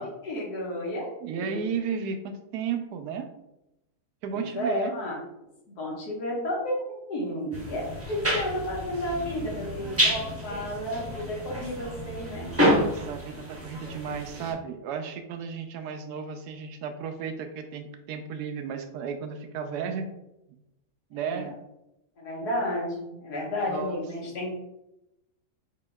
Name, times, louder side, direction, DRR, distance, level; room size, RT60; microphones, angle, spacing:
voice 1, 0.0-1.6 4.5-5.2 5.7-12.5 21.1-21.5 22.2-24.5, left 1 dB, 85° left, -2 dB, 1.8 m, -32 dB
voice 2, 1.2-3.3 4.2-5.0 12.6-20.1 20.5-20.6 21.1-21.6 23.7-24.5, right 6 dB, 85° right, 7 dB, 1.1 m, -34 dB
sound 1, 7.5-14.5, equal, 10° right, 0.8 m, -29 dB
7.0 x 2.8 x 2.3 m, 0.90 s
omnidirectional pair, 1.6 m